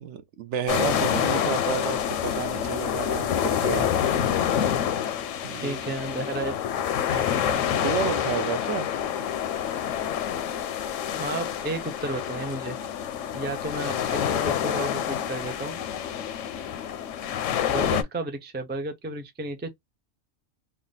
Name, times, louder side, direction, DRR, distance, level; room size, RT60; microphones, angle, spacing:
voice 1, 0.0-3.9 5.4-6.2 7.5-8.9, right 8 dB, 70° right, 0.9 m, -31 dB
sound 1, 0.7-18.0, left 9 dB, 80° left, 0.9 m, -27 dB
voice 2, 5.5-6.6 7.1-7.6 11.1-12.8 13.3-15.8 16.6-16.7 17.7-19.7, right 2 dB, 15° right, 0.3 m, -33 dB
3.4 x 2.1 x 3.9 m
omnidirectional pair, 1.3 m